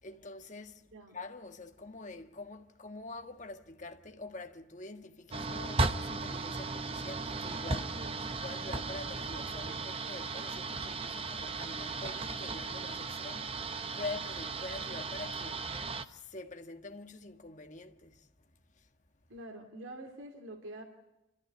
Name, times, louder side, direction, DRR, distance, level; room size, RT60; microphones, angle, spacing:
voice 1, 0.0-18.9, left 3 dB, 40° left, 1.6 m, -46 dB
sound 1, 5.3-16.0, right 3 dB, 30° right, 0.9 m, -36 dB
voice 2, 19.3-20.8, right 1 dB, 90° right, 2.6 m, -46 dB
28.5 x 14.0 x 9.6 m
head